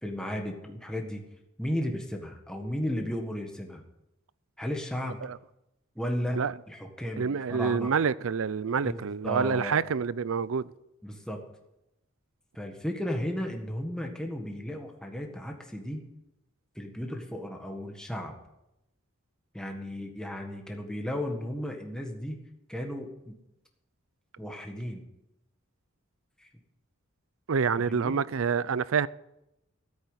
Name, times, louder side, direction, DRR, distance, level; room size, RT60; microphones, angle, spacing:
voice 1, 0.0-1.2 1.6-3.8 4.6-5.2 5.9-7.9 8.8-9.8 11.0-11.4 12.5-16.0 16.7-18.3 19.5-22.4 22.7-23.4 24.4-25.0 26.4-26.5 27.8-28.2, equal, 5° left, 1.7 m, -34 dB
voice 2, 7.2-10.7 27.5-29.1, right 6 dB, 70° right, 0.5 m, -27 dB
14.0 x 8.5 x 8.2 m
head